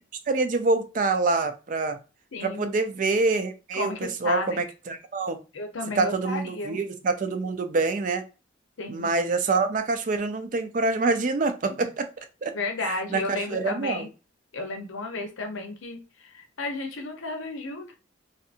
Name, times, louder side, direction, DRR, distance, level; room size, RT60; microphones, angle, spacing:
voice 1, 0.3-2.0 2.4-5.4 6.0-8.2 8.9-12.1 12.4-12.5 12.8-14.0, right 3 dB, 40° right, 8 dB, 0.4 m, -26 dB
voice 2, 2.3-2.7 3.7-4.6 5.5-6.8 8.8-9.1 12.5-14.1 14.5-17.9, left 3 dB, 90° left, 4 dB, 0.7 m, -33 dB
2.6 x 2.5 x 2.5 m, 0.31 s
head